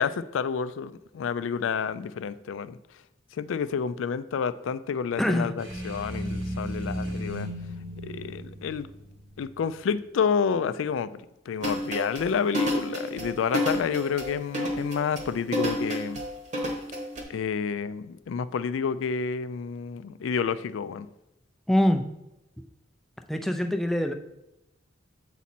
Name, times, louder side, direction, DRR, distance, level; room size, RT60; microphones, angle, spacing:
voice 1, 0.0-2.8 3.3-7.5 8.0-8.9 9.4-11.1 11.5-16.2 17.3-21.1, left 6 dB, 85° left, 14 dB, 0.3 m, -29 dB
voice 2, 5.2-5.5 21.7-22.0 23.3-24.1, left 1 dB, ahead, 6 dB, 0.3 m, -24 dB
sound 1, 5.6-9.5, equal, 85° right, 2.5 m, -35 dB
sound 2, 11.6-17.2, equal, 40° right, 1.0 m, -29 dB
7.2 x 4.1 x 4.2 m, 0.91 s
head